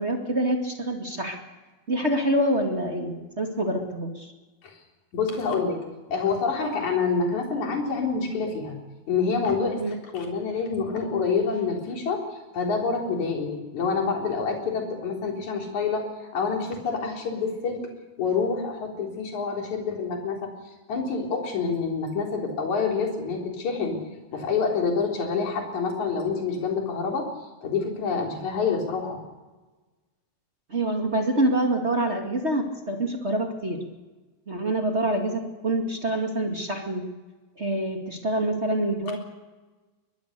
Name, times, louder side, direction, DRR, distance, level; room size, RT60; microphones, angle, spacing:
voice 1, 0.0-1.4 1.9-4.3 9.8-9.9 30.7-33.8 34.5-37.0 37.6-39.2, right 1 dB, 25° right, 2 dB, 1.7 m, -26 dB
voice 2, 5.1-5.8 6.1-8.8 9.1-16.0 16.3-17.8 18.2-20.5 20.9-24.0 24.3-27.3 27.6-29.2, left 5 dB, 55° left, 1 dB, 4.9 m, -27 dB
23.0 x 19.5 x 6.7 m, 1.2 s
omnidirectional pair, 4.1 m